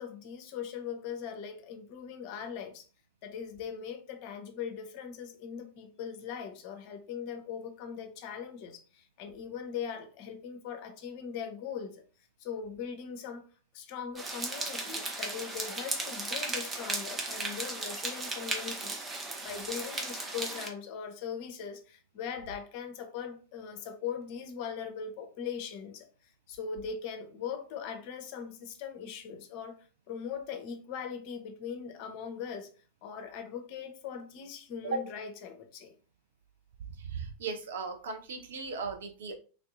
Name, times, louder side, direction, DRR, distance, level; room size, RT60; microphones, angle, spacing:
voice 1, 0.0-2.9 3.2-12.0 12.4-13.4 13.7-19.0 19.4-32.7 33.0-36.0, left 7 dB, 45° left, 0.6 m, -40 dB
sound 1, 14.2-20.7, right 2 dB, 15° right, 0.6 m, -36 dB
voice 2, 37.0-39.3, right 4 dB, 60° right, 0.5 m, -36 dB
3.3 x 2.6 x 2.5 m
figure-of-eight pair, 90°, 0 cm